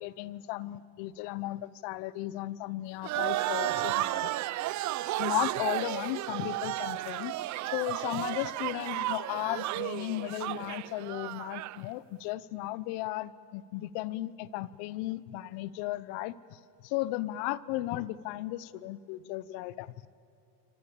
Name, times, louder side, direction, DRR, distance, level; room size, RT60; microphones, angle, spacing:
voice 1, 0.0-4.3 5.2-7.3 7.7-20.1, left 16 dB, 55° left, 19 dB, 1.0 m, -35 dB
sound 1, 3.0-11.8, right 15 dB, 35° right, 0.7 m, -33 dB
26.5 x 25.5 x 7.1 m, 2.6 s
supercardioid pair, 105°, 50 cm